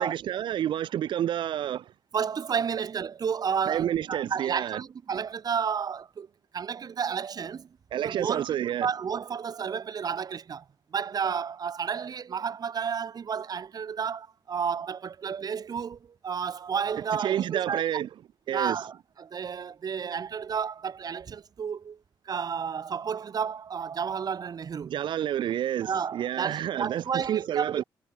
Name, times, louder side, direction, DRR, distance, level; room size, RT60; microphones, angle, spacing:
voice 1, 0.0-1.9 3.7-4.8 7.9-8.9 17.2-18.1 18.5-18.9 24.9-27.8, right 11 dB, 85° right, 0.9 m, -29 dB
voice 2, 2.1-6.3 6.5-7.7 8.0-10.7 10.9-17.8 18.5-22.0 22.3-25.0 25.8-27.8, right 7 dB, 55° right, 1.9 m, -31 dB
cardioid pair, 100°, 8 cm